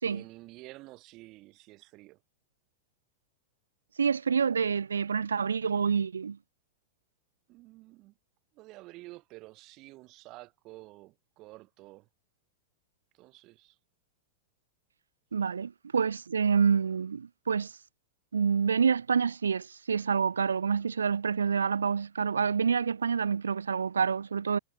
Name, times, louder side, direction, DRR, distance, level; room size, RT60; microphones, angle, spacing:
voice 1, 0.0-2.2 7.5-8.1 8.5-12.1 13.1-13.8 15.4-15.5, right 20 dB, 40° right, 5.8 m, -50 dB
voice 2, 4.0-6.4 15.3-17.7 18.3-24.6, right 6 dB, 70° right, 0.3 m, -27 dB
figure-of-eight pair, 90°, 0 cm